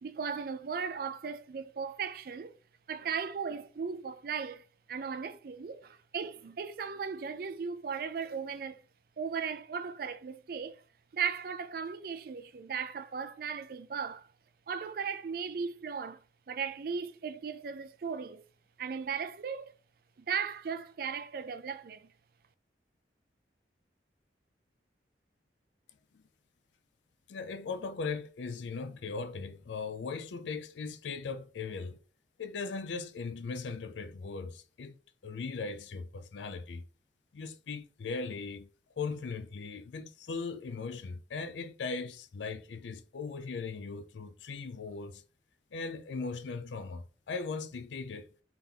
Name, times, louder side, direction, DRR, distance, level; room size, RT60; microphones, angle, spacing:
voice 1, 0.0-2.5 2.9-4.6 4.9-8.8 9.2-10.8 11.1-14.3 14.7-16.2 16.5-18.4 18.8-19.7 20.2-22.1, right 6 dB, 55° right, 0.4 m, -37 dB
voice 2, 27.3-32.0 32.4-35.0 35.2-36.8 37.3-38.7 39.0-45.2 45.7-48.3, left 4 dB, 85° left, 0.4 m, -39 dB
3.5 x 2.9 x 3.7 m
head